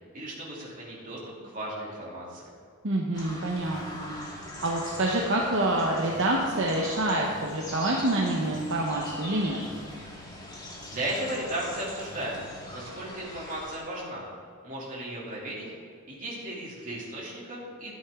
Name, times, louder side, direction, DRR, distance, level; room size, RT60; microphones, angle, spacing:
voice 1, 0.1-2.5 10.9-12.4 12.7-14.3 14.6-15.7 16.1-17.9, right 1 dB, 40° right, -5 dB, 2.9 m, -35 dB
voice 2, 2.8-4.2 4.6-9.6, right 1 dB, 65° right, -1 dB, 1.0 m, -27 dB
sound 1, 3.1-13.8, left 1 dB, 20° left, 1.9 m, -42 dB
sound 2, 3.6-13.2, left 1 dB, 70° left, 2.3 m, -49 dB
13.0 x 9.9 x 3.7 m, 2.2 s
head